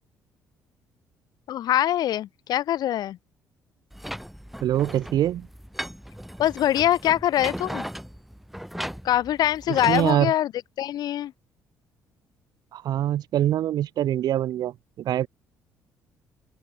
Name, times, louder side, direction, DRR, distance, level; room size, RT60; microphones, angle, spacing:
voice 1, 1.5-3.2 6.4-7.8 9.0-10.5 10.8-11.3, left 12 dB, 60° left, 0.6 m, -23 dB
sound 1, 3.9-10.1, equal, ahead, 5.9 m, -37 dB
voice 2, 4.6-5.5 9.7-10.3 12.7-15.3, right 12 dB, 60° right, 1.1 m, -24 dB
hypercardioid pair, 50°, 8 cm